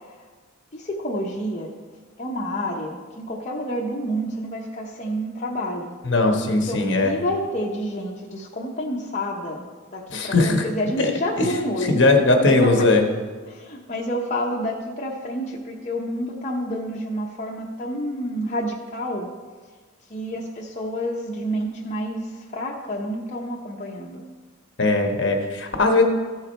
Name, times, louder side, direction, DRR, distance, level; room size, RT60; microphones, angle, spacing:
voice 1, 0.7-1.7 2.2-5.9 6.5-12.0 12.4-12.9 13.5-19.3 20.1-24.2, equal, 35° left, -3 dB, 0.8 m, -29 dB
voice 2, 6.0-7.2 10.1-10.6 11.0-11.1 11.4-11.5 11.9-13.0 24.8-26.0, left 2 dB, 55° left, 4 dB, 1.1 m, -19 dB
14.0 x 4.8 x 4.3 m, 1.5 s
head